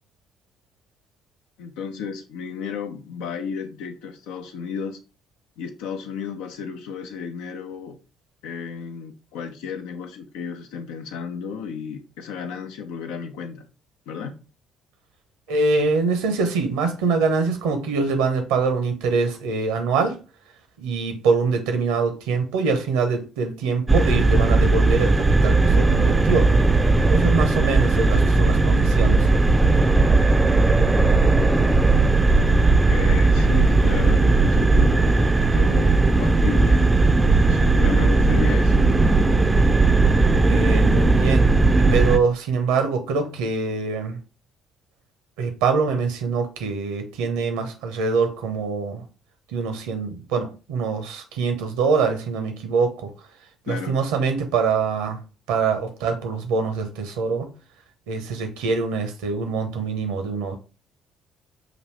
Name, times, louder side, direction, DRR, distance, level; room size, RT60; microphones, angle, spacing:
voice 1, 1.6-5.0 5.6-8.0 8.4-13.7 14.1-14.3 30.6-31.2 32.8-36.9 37.5-38.9 53.7-53.9, left 6 dB, 70° left, 0.6 m, -33 dB
voice 2, 15.5-20.2 20.8-26.5 27.1-29.3 40.4-41.5 41.8-44.2 45.4-49.0 49.5-53.1 53.7-55.2 55.5-57.5 58.1-60.6, right 4 dB, 70° right, 0.9 m, -24 dB
sound 1, 23.9-42.2, right 3 dB, 15° right, 0.5 m, -17 dB
6.0 x 2.7 x 3.3 m
figure-of-eight pair, 50°, 0 cm